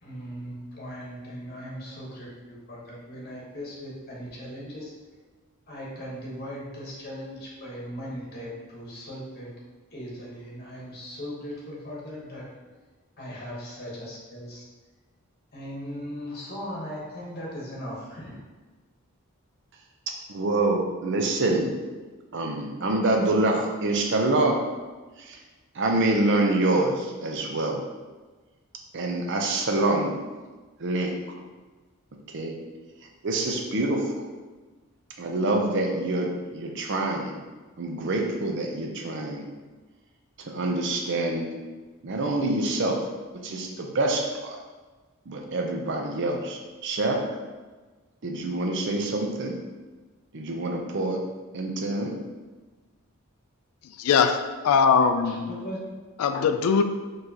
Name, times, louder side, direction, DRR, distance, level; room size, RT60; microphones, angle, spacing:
voice 1, 0.0-4.9 5.7-9.6 9.9-12.5 13.2-14.6 15.5-18.4 55.2-56.0, equal, 45° left, -4 dB, 1.0 m, -38 dB
voice 2, 20.3-21.8 22.3-24.7 25.2-25.4 25.7-27.8 28.9-30.2 30.8-31.1 32.3-32.6 33.2-34.3 35.2-37.3 37.8-39.5 40.4-41.5 42.0-43.1 43.4-44.6 45.3-47.3 48.2-49.6 50.3-51.2 51.5-52.1, right 2 dB, 55° right, 2 dB, 0.5 m, -26 dB
voice 3, 53.8-55.5 56.2-56.8, left 6 dB, 75° left, 8 dB, 0.3 m, -21 dB
4.3 x 3.2 x 2.8 m, 1.3 s
head